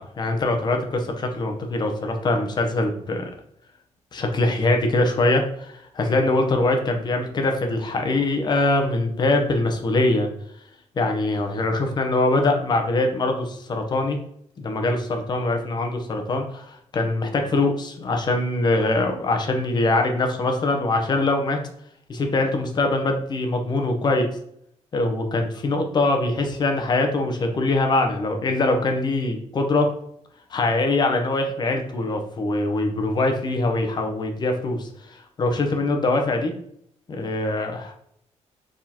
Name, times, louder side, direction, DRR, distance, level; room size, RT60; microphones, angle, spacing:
voice 1, 0.0-3.3 4.1-10.3 11.0-14.2 14.6-21.6 22.1-24.3 24.9-29.9 30.5-36.5 37.1-37.9, left 2 dB, 35° left, 4 dB, 0.8 m, -23 dB
4.4 x 3.7 x 2.9 m, 0.70 s
cardioid pair, 150°, 12 cm